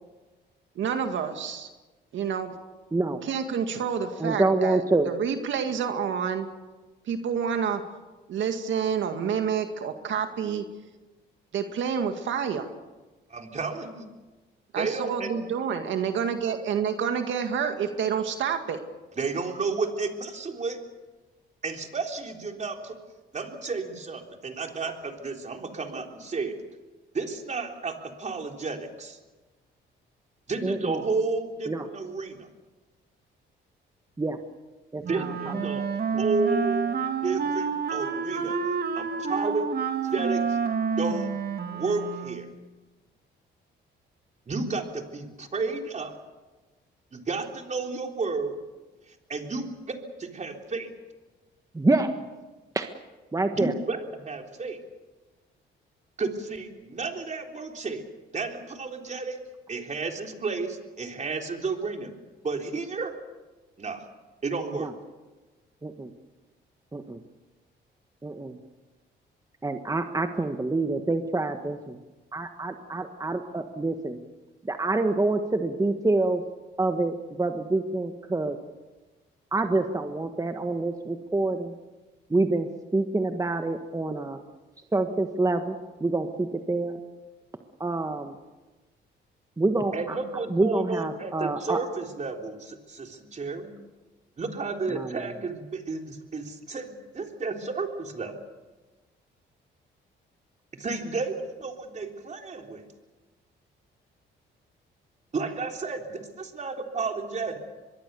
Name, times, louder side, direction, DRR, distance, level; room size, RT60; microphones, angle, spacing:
voice 1, 0.8-1.7 2.1-2.5 3.2-6.5 7.0-7.8 8.3-10.7 11.5-12.7 14.7-18.8, right 7 dB, 70° right, 6 dB, 2.1 m, -28 dB
voice 2, 4.2-5.1 30.6-31.0 31.7-31.9 34.2-34.4 34.9-35.6 36.1-36.2 51.7-52.1 52.7-52.9 53.3-53.7 64.7-64.9 65.8-66.1 66.9-67.2 68.2-68.6 69.6-72.0 72.3-74.2 74.6-76.4 76.8-78.6 79.5-81.7 82.3-84.4 84.9-87.0 87.8-88.4 89.6-90.2 90.5-91.8 94.9-95.2, right 2 dB, 15° right, 6 dB, 1.5 m, -27 dB
voice 3, 13.3-14.1 14.8-15.3 19.2-20.8 21.6-23.0 23.3-26.6 27.1-29.2 30.5-32.5 35.0-35.8 36.1-36.9 37.2-38.6 39.0-39.6 40.0-40.6 41.0-41.3 41.7-42.5 44.5-46.1 47.1-48.6 49.3-50.9 53.5-54.8 56.2-58.0 58.3-59.4 59.7-62.1 62.4-63.1 63.8-64.1 64.4-64.9 89.9-93.7 94.4-98.3 100.8-102.8 105.3-107.6, right 4 dB, 35° right, 3 dB, 3.7 m, -32 dB
Wind instrument woodwind instrument, 35.0-42.5, right 5 dB, 50° right, 2.2 m, -29 dB
24.5 x 21.5 x 7.0 m, 1.2 s
cardioid pair, 90°, 20 cm